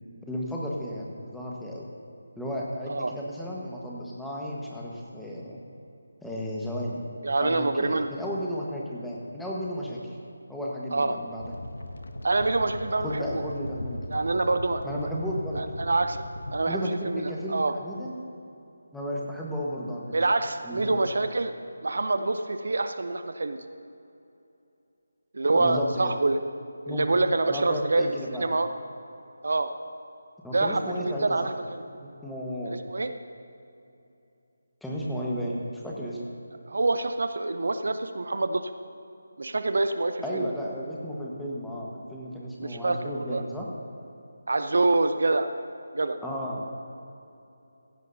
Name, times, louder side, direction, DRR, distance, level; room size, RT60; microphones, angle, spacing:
voice 1, 0.3-1.9 2.4-5.6 6.2-7.0 7.4-10.0 10.5-11.5 13.0-14.0 14.8-15.6 16.7-18.2 18.9-20.0 20.6-21.0 25.5-26.1 26.9-27.1 27.4-28.4 30.4-31.2 32.0-32.8 34.8-36.2 40.2-43.7 46.2-46.7, equal, ahead, -5 dB, 1.4 m, -33 dB
voice 2, 7.2-8.1 10.9-11.2 12.2-13.4 14.1-15.1 15.5-16.2 16.5-17.7 20.1-21.5 21.8-23.6 25.3-26.4 26.9-28.7 29.4-29.7 30.5-31.8 32.7-33.1 36.7-38.6 39.4-40.5 42.6-43.4 44.5-45.5 45.9-46.2, right 2 dB, 65° right, 9 dB, 0.6 m, -26 dB
sound 1, 11.4-16.6, left 1 dB, 70° left, 1.0 m, -38 dB
16.5 x 15.5 x 2.8 m, 2.7 s
figure-of-eight pair, 155°, 0 cm